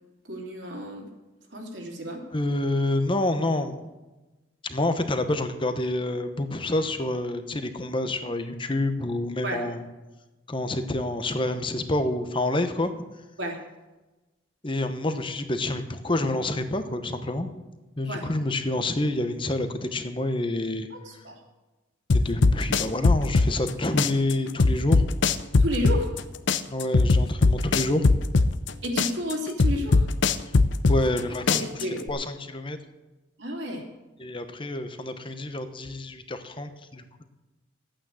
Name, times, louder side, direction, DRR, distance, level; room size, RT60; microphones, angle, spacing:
voice 1, 0.3-1.1 1.5-2.2 9.4-9.6 13.4-13.6 18.1-18.3 20.9-21.4 25.6-26.1 28.8-30.1 31.5-32.1 33.4-33.8, equal, 65° right, 0 dB, 3.0 m, -32 dB
voice 2, 2.3-3.8 4.6-9.8 10.5-12.9 14.6-17.5 18.0-20.9 22.1-25.1 26.7-28.1 30.9-31.7 32.1-32.8 34.2-37.2, left 1 dB, 25° left, 9 dB, 1.0 m, -28 dB
sound 1, 22.1-23.7 24.0-26.2 26.5-28.7 29.0-31.2 31.5-32.1, left 3 dB, 70° left, 0.6 m, -20 dB
12.0 x 8.9 x 7.7 m, 1.1 s
head